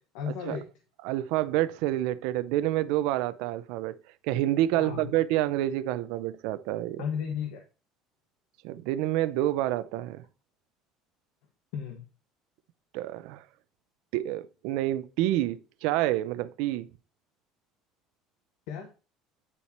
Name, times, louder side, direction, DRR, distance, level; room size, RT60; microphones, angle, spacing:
voice 1, 0.1-0.6 4.8-5.1 7.0-7.6 11.7-12.0 18.7-18.9, left 7 dB, 80° left, 1.3 m, -34 dB
voice 2, 1.0-4.0 4.2-7.0 8.6-10.2 12.9-13.4 14.1-16.9, right 14 dB, 75° right, 0.5 m, -28 dB
9.8 x 4.3 x 4.3 m
cardioid pair, 140°, 0 cm